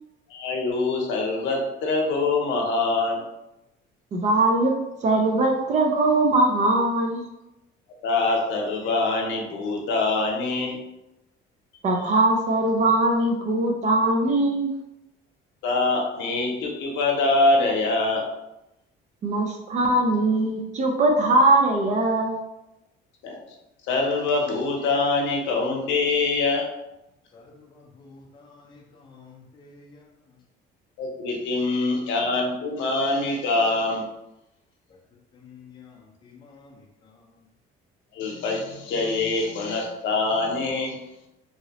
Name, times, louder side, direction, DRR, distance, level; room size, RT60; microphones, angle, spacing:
voice 1, 0.3-3.2 8.0-10.8 15.6-18.2 23.2-23.4 23.9-26.7 31.0-34.0 38.1-41.0, left 3 dB, 65° left, 0 dB, 0.8 m, -24 dB
voice 2, 4.1-7.2 11.8-14.7 19.2-22.4, right 2 dB, 35° right, 2 dB, 0.4 m, -21 dB
voice 3, 27.3-30.0 35.3-37.2, left 4 dB, 20° left, 0 dB, 0.5 m, -50 dB
3.0 x 2.8 x 2.8 m, 0.92 s
cardioid pair, 170°, 21 cm